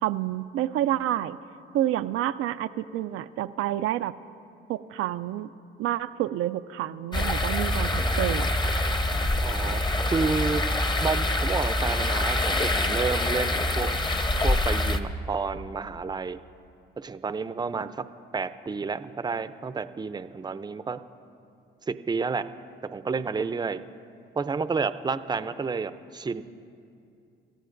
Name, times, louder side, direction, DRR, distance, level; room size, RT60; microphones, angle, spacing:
voice 1, 0.0-1.4 1.7-4.1 4.7-5.5 5.8-8.5, right 13 dB, 80° right, 11 dB, 0.4 m, -28 dB
sound 1, 7.1-15.0, left 1 dB, 20° left, 0.9 m, -25 dB
voice 2, 9.4-9.8 10.1-10.6 11.0-13.9 14.4-16.4 17.0-18.1 18.3-21.0 21.9-22.5 22.8-23.8 24.4-26.4, right 4 dB, 20° right, 12 dB, 0.5 m, -30 dB
27.0 x 14.5 x 2.6 m, 2.5 s
cardioid pair, 80°, 21 cm